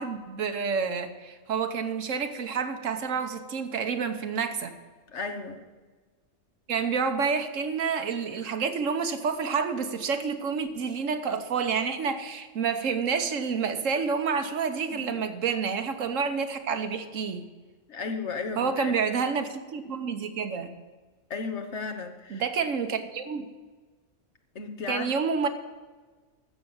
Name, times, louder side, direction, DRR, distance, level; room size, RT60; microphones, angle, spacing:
voice 1, 0.0-4.7 6.7-17.5 18.6-20.8 22.3-23.5 24.9-25.5, right 5 dB, 80° right, 8 dB, 1.4 m, -29 dB
voice 2, 5.1-5.6 14.9-15.2 17.9-18.9 21.3-22.5 24.5-25.1, left 4 dB, 65° left, 5 dB, 1.4 m, -34 dB
14.5 x 6.6 x 7.1 m, 1.3 s
omnidirectional pair, 1.3 m